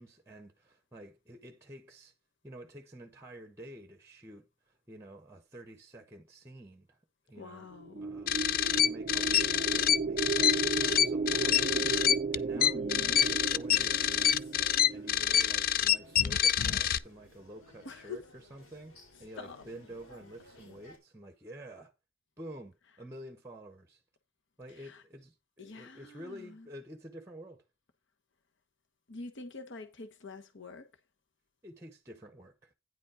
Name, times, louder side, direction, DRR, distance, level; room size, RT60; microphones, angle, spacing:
voice 1, 0.0-2.1 2.4-7.0 7.3-8.5 8.8-14.5 14.9-18.9 19.2-21.9 22.4-24.0 24.6-27.6 31.6-32.7, right 1 dB, 15° right, 0.9 m, -49 dB
voice 2, 7.4-8.1 12.5-13.2 17.8-18.2 19.4-19.6 24.7-25.0 25.6-26.7 29.1-30.9, left 3 dB, 60° left, 1.1 m, -45 dB
sound 1, 7.7-16.2, right 4 dB, 35° right, 0.4 m, -35 dB
sound 2, 8.3-17.0, left 10 dB, 45° left, 0.4 m, -27 dB
sound 3, 13.3-21.0, left 2 dB, 85° left, 3.7 m, -58 dB
9.6 x 5.0 x 4.8 m
head